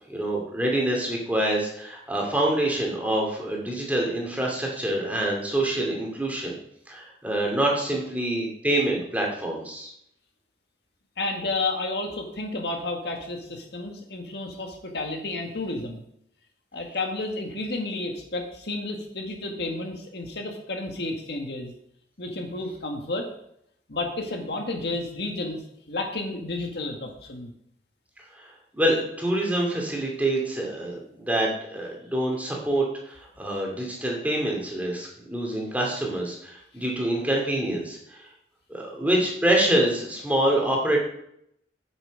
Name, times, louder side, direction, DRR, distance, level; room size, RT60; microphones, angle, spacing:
voice 1, 0.1-6.6 6.9-9.9 28.3-28.5 28.7-38.3 38.7-41.0, right 1 dB, 10° right, -2 dB, 2.5 m, -26 dB
voice 2, 11.2-16.0 16.7-21.7 22.2-23.3 23.9-25.6 25.9-27.5, left 2 dB, 60° left, 3 dB, 1.8 m, -31 dB
9.1 x 8.3 x 5.1 m, 0.73 s
head